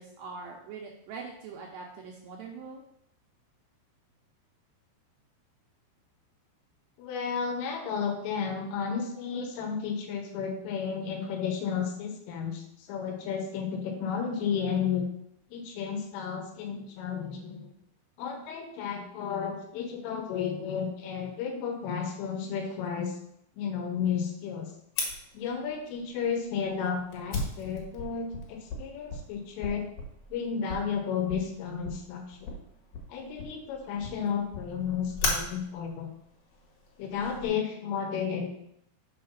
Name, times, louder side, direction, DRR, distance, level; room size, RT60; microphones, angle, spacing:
voice 1, 0.0-2.8, right 4 dB, 75° right, 0 dB, 2.5 m, -42 dB
voice 2, 7.0-15.1 15.5-17.7 18.2-23.2 23.6-24.7 25.3-29.8 30.3-32.6 33.1-36.1 37.0-38.6, left 6 dB, 80° left, 3 dB, 3.8 m, -32 dB
Fire, 25.0-37.5, left 2 dB, 60° left, 3.0 m, -38 dB
7.7 x 5.5 x 5.8 m, 0.75 s
omnidirectional pair, 5.7 m